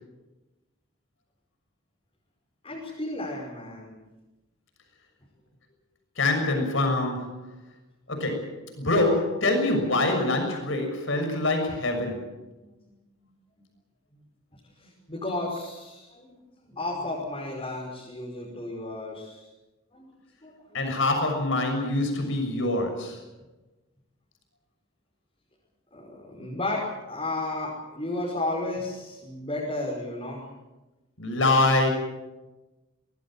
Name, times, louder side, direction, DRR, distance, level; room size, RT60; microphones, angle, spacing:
voice 1, 2.6-3.9 12.6-12.7 14.8-19.5 19.9-20.0 20.4-20.9 25.9-30.5, left 2 dB, 25° left, -4 dB, 5.5 m, -33 dB
voice 2, 6.2-7.3 8.1-12.2 20.7-23.2 31.2-31.9, left 2 dB, 65° left, 5 dB, 6.5 m, -25 dB
24.0 x 20.0 x 7.6 m, 1.1 s
head